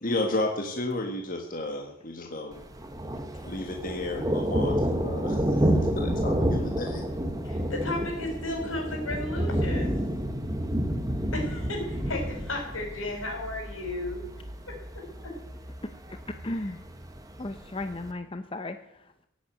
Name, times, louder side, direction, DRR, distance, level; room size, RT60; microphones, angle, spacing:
voice 1, 0.0-2.6 3.4-7.0, left 2 dB, 40° left, 2 dB, 1.6 m, -32 dB
Thunder, 2.5-18.1, equal, 15° right, 1.2 m, -30 dB
voice 2, 7.4-10.0 11.3-14.2 14.7-15.3, left 2 dB, 75° left, 1 dB, 5.9 m, -34 dB
voice 3, 16.1-16.9 17.4-19.3, left 2 dB, 25° left, 8 dB, 0.6 m, -36 dB
16.5 x 8.3 x 9.3 m, 0.82 s
head